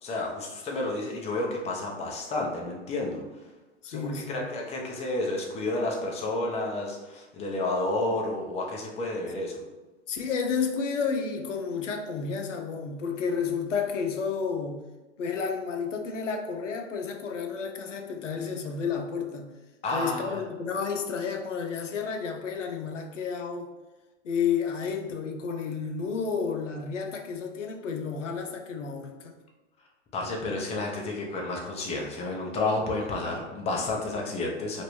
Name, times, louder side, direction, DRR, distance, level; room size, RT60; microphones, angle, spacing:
voice 1, 0.0-3.2 3.9-9.6 19.8-20.4 30.1-34.8, left 2 dB, 20° left, -1 dB, 0.5 m, -31 dB
voice 2, 3.8-4.5 10.1-14.8 15.2-19.5 19.9-23.7 24.2-29.4, left 6 dB, 90° left, 3 dB, 0.6 m, -31 dB
3.0 x 2.5 x 3.0 m, 1.1 s
hypercardioid pair, 105°, 36 cm